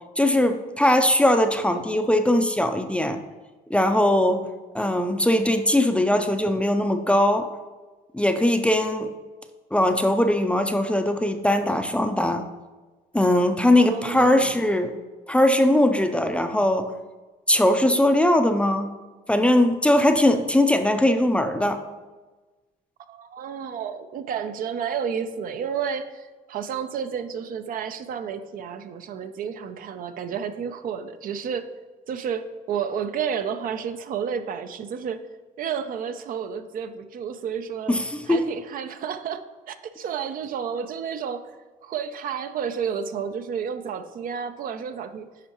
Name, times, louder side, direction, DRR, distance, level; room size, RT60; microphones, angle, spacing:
voice 1, 0.2-3.2 3.7-4.4 4.7-7.5 8.1-9.1 9.7-12.5 13.1-14.9 15.3-16.9 17.5-18.9 19.3-21.8 37.9-38.4, left 1 dB, 5° left, 7 dB, 0.5 m, -20 dB
voice 2, 5.6-6.0 13.7-14.7 23.1-31.7 32.1-35.2 35.6-38.0 38.3-41.4 41.8-45.3, right 7 dB, 55° right, 10 dB, 0.5 m, -31 dB
9.8 x 5.5 x 3.0 m, 1.3 s
cardioid pair, 110°, 17 cm